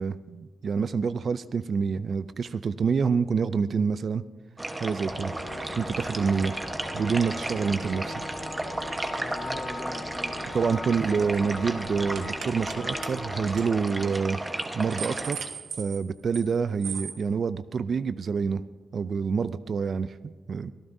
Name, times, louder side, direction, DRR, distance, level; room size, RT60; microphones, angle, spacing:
voice 1, 0.0-4.2 4.8-5.3 5.8-6.5 6.9-8.2 10.5-14.4 14.7-15.5 15.8-18.6 18.9-20.7, right 5 dB, 50° right, 14 dB, 0.4 m, -27 dB
sound 1, 4.6-15.3, right 1 dB, 15° right, 1.1 m, -34 dB
sound 2, 5.1-13.5, left 3 dB, 50° left, 2.5 m, -41 dB
voice 2, 9.2-11.3, left 2 dB, 25° left, 9 dB, 0.8 m, -43 dB
sound 3, 10.7-11.0 11.2-11.5 12.1-12.8 13.0-13.1 13.5-13.7 14.0-14.2 14.6-16.5 16.8-17.2, right 6 dB, 70° right, 1.3 m, -37 dB
24.5 x 14.5 x 2.7 m, 1.3 s
wide cardioid pair, 145°, 0 cm